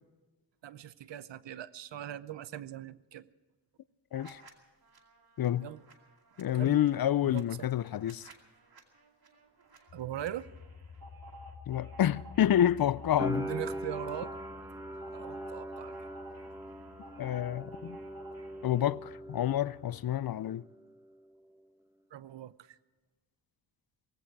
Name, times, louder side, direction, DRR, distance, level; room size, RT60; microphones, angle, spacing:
voice 1, 0.6-3.3 5.6-5.8 6.5-6.8 7.2-7.7 9.9-10.5 13.3-14.3 15.1-15.9 22.1-22.8, right 11 dB, 75° right, 0.8 m, -41 dB
sound 1, 4.1-4.5 4.8-18.9, right 2 dB, 55° right, 2.4 m, -54 dB
voice 2, 6.4-8.3 11.7-13.5 17.2-18.0 18.6-20.6, left 11 dB, 55° left, 0.5 m, -28 dB
sound 2, 9.9-20.3, left 6 dB, 75° left, 5.4 m, -53 dB
sound 3, 13.2-20.0 20.2-21.1, right 1 dB, 5° right, 1.5 m, -41 dB
18.0 x 16.0 x 4.7 m
wide cardioid pair, 100°, 44 cm